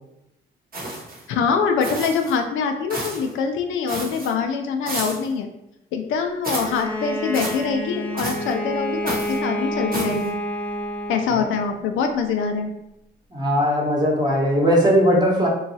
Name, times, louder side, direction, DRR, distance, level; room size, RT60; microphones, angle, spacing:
sound 1, 0.7-1.2 1.8-2.4 2.9-3.3 3.9-4.3 4.8-5.3 6.4-6.8 7.3-7.6 8.2-8.5 9.0-9.4 9.9-10.3, right 2 dB, 45° right, 0.8 m, -31 dB
voice 1, 1.3-5.5 5.9-10.4 11.1-12.7, left 5 dB, 85° left, 5 dB, 0.4 m, -24 dB
Bowed string instrument, 6.6-11.7, equal, 5° left, 0.4 m, -29 dB
voice 2, 13.3-15.5, equal, 20° right, -3 dB, 0.9 m, -19 dB
2.9 x 2.3 x 2.7 m, 0.86 s
cardioid pair, 90°, 20 cm